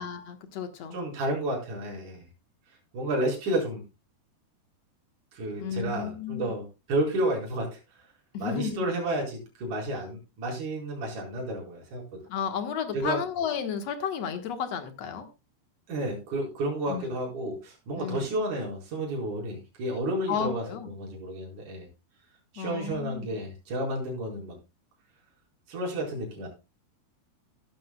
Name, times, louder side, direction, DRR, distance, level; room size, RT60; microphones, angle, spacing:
voice 1, 0.0-1.0 5.6-6.5 8.3-8.8 12.3-15.3 16.9-17.1 18.0-18.3 20.3-20.9 22.6-23.3, left 7 dB, 60° left, 7 dB, 1.8 m, -33 dB
voice 2, 0.9-2.2 2.9-3.8 5.3-7.8 8.4-12.2 12.9-13.2 15.9-21.9 22.5-24.6 25.7-26.5, right 1 dB, 50° right, -2 dB, 5.8 m, -31 dB
15.5 x 12.0 x 2.3 m, 0.26 s
omnidirectional pair, 4.7 m